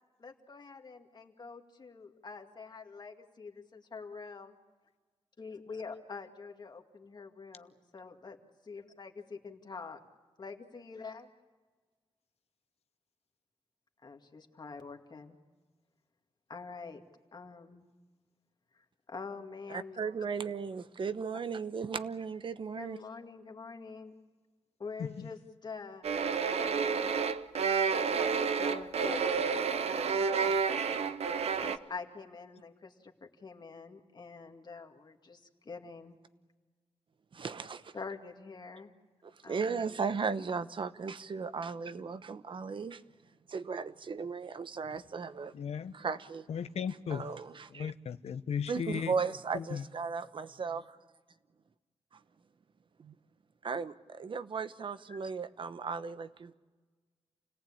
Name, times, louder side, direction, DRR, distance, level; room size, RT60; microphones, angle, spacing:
voice 1, 0.2-4.6 5.4-8.4 8.7-10.0 10.4-11.3 14.0-15.4 16.5-17.0 17.3-17.9 18.7-20.0 22.8-24.1 24.8-26.1 26.6-27.1 27.5-28.1 28.6-31.1 31.6-36.2 37.9-38.9 39.4-39.8 55.1-55.2, left 4 dB, 45° left, 4 dB, 2.2 m, -46 dB
voice 2, 19.7-23.0 37.3-37.9 39.5-43.0 43.5-45.5 45.9-46.5 47.1-47.9 48.7-51.0 53.0-53.1 53.6-56.5, right 5 dB, 55° right, 12 dB, 1.0 m, -36 dB
sound 1, 26.0-31.8, right 5 dB, 90° right, 0.9 m, -30 dB
voice 3, 45.5-45.9 46.5-47.3 47.7-49.1 49.5-49.8, left 7 dB, 85° left, 12 dB, 0.8 m, -36 dB
29.0 x 18.0 x 8.7 m, 1.3 s
wide cardioid pair, 120°, 10 cm